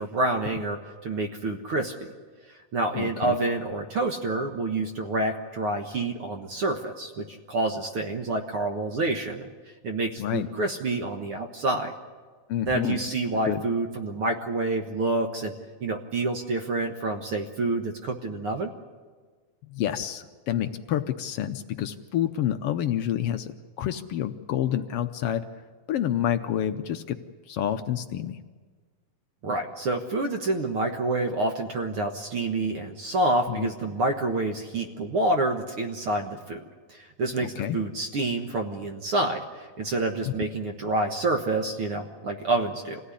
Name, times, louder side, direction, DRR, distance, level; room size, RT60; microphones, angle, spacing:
voice 1, 0.0-1.9 2.7-9.5 9.8-11.9 12.7-15.5 15.8-18.7 29.4-36.6 36.9-43.0, right 2 dB, 55° right, 3 dB, 1.9 m, -28 dB
voice 2, 2.9-3.4 10.2-10.5 12.5-13.0 13.5-13.6 19.7-25.4 25.9-27.2 27.5-28.4 33.5-33.7 37.4-37.8, left 11 dB, 75° left, 8 dB, 1.4 m, -28 dB
26.5 x 17.0 x 9.9 m, 1.5 s
omnidirectional pair, 3.6 m